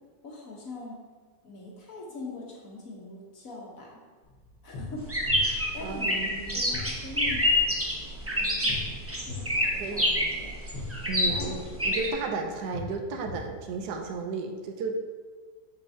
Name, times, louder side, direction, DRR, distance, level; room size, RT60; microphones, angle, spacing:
voice 1, 0.2-1.0 1.4-4.0 4.6-5.1 5.4-5.5 5.7-6.2 6.5-7.5 8.4-10.5 11.2-12.2, left 3 dB, 55° left, -3 dB, 1.5 m, -42 dB
sound 1, 4.2-14.2, left 3 dB, 85° left, 1.8 m, -42 dB
sound 2, 5.0-12.1, left 1 dB, 15° right, 0.6 m, -27 dB
voice 2, 5.8-6.6 9.7-10.1 11.1-15.0, right 3 dB, 80° right, 4 dB, 1.3 m, -34 dB
7.7 x 6.6 x 2.8 m, 1.5 s
omnidirectional pair, 1.8 m